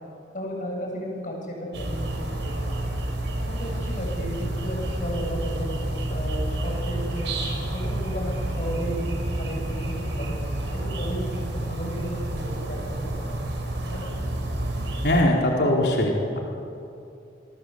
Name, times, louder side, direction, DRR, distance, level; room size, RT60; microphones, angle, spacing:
voice 1, 0.3-2.5 3.4-5.7 6.1-7.4 7.7-9.1 9.4-10.3 11.0-12.8 13.0-13.3 13.9-14.3, equal, 45° left, 0 dB, 8.0 m, -34 dB
sound 1, 1.7-15.2, right 1 dB, 75° right, 5.5 m, -29 dB
voice 2, 15.0-16.4, left 1 dB, 60° left, -1 dB, 4.5 m, -21 dB
29.0 x 23.0 x 8.2 m, 2.5 s
head